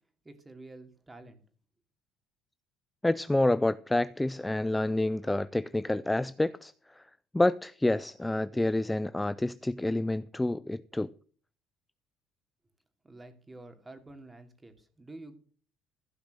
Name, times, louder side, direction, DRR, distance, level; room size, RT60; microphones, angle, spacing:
voice 1, 0.2-1.4 13.0-15.4, right 2 dB, 15° right, 2.9 m, -49 dB
voice 2, 3.0-7.0 7.3-11.1, left 1 dB, 10° left, 0.4 m, -28 dB
15.5 x 6.0 x 6.5 m
supercardioid pair, 95°, 0 cm